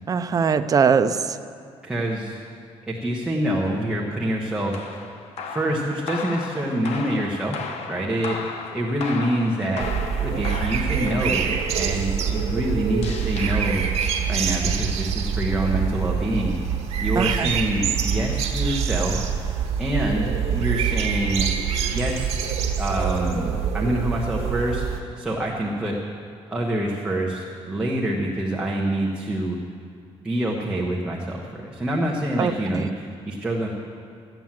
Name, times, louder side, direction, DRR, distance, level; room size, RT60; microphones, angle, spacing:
voice 1, 0.1-1.4 17.2-17.5 32.4-32.9, right 6 dB, 35° right, 10 dB, 0.6 m, -21 dB
voice 2, 1.8-2.4 2.9-5.0 5.4-13.8 14.3-16.6 17.0-19.5 19.8-21.5 21.9-22.4 22.8-26.0 26.5-29.6 30.2-33.7, right 1 dB, 10° right, -3 dB, 1.3 m, -26 dB
sound 1, 4.7-14.9, left 5 dB, 80° left, 1.0 m, -36 dB
sound 2, 9.8-25.0, right 7 dB, 75° right, 1.5 m, -25 dB
14.5 x 9.2 x 7.5 m, 2.4 s
cardioid pair, 135°, 11 cm